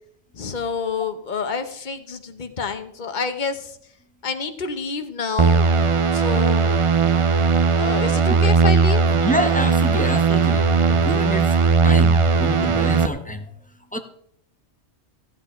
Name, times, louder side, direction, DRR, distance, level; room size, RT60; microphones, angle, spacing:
voice 1, 0.3-3.8 4.2-5.7 6.1-6.7 7.8-9.0, left 5 dB, 45° left, 8 dB, 1.1 m, -28 dB
sound 1, 5.4-13.1, right 4 dB, 40° right, 0.4 m, -18 dB
voice 2, 9.1-13.5 13.9-14.0, equal, 10° left, 6 dB, 0.9 m, -27 dB
15.0 x 9.0 x 4.4 m, 0.69 s
omnidirectional pair, 1.2 m